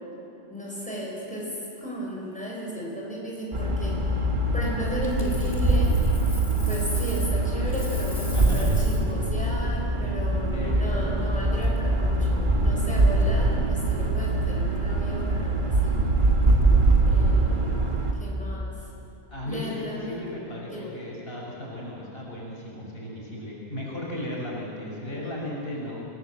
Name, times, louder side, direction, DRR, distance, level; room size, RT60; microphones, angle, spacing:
voice 1, 0.5-4.2 4.5-6.0 6.7-16.0 17.0-18.7 19.4-20.3 20.7-21.0, equal, 5° left, -4 dB, 5.7 m, -35 dB
sound 1, 3.5-18.1, right 2 dB, 45° right, 2.0 m, -23 dB
Coin (dropping), 5.0-7.4 7.7-9.1 11.9-12.2, left 2 dB, 40° left, 2.8 m, -42 dB
voice 2, 8.3-8.8 10.5-10.7 19.3-26.1, left 1 dB, 60° left, -4 dB, 5.8 m, -35 dB
28.0 x 18.5 x 7.7 m, 2.9 s
omnidirectional pair, 1.1 m